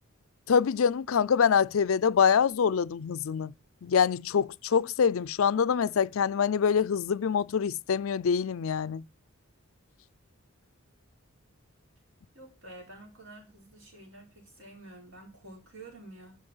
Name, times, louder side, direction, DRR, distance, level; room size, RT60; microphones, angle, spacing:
voice 1, 0.5-3.5 3.8-9.0, left 6 dB, 70° left, 0.4 m, -25 dB
voice 2, 12.3-16.4, right 2 dB, 65° right, 4.8 m, -49 dB
12.0 x 5.1 x 5.5 m
head